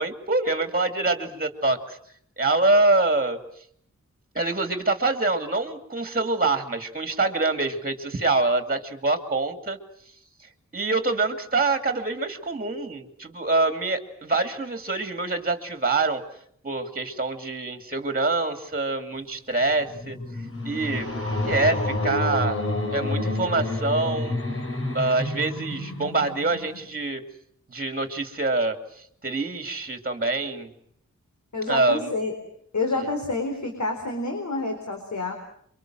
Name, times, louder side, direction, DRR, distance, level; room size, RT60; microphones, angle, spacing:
voice 1, 0.0-2.0 2.4-3.4 4.3-9.8 10.7-16.2 16.6-20.2 20.6-21.1 21.4-22.6 22.9-24.4 24.9-27.2 27.7-30.7 31.7-32.1, right 3 dB, 30° right, 7 dB, 2.5 m, -25 dB
sound 1, 19.6-27.0, left 2 dB, 45° left, 4.4 m, -29 dB
voice 2, 31.5-32.3 32.7-35.3, left 3 dB, 70° left, 4 dB, 4.4 m, -28 dB
28.5 x 24.5 x 7.6 m, 0.67 s
wide cardioid pair, 95°, 29 cm